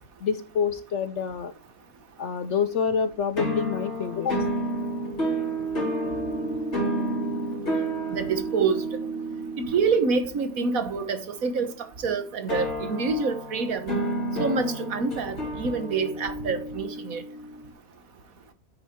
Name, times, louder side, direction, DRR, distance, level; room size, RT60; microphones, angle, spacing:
voice 1, 0.2-1.5 2.2-4.5, left 6 dB, 60° left, 0.8 m, -27 dB
sound 1, 3.4-11.2 12.5-17.7, right 1 dB, 45° left, 3.3 m, -30 dB
voice 2, 8.1-8.8 9.6-11.7 12.0-13.9 14.4-17.2, right 4 dB, 60° right, 1.6 m, -26 dB
9.0 x 6.8 x 4.4 m
omnidirectional pair, 1.7 m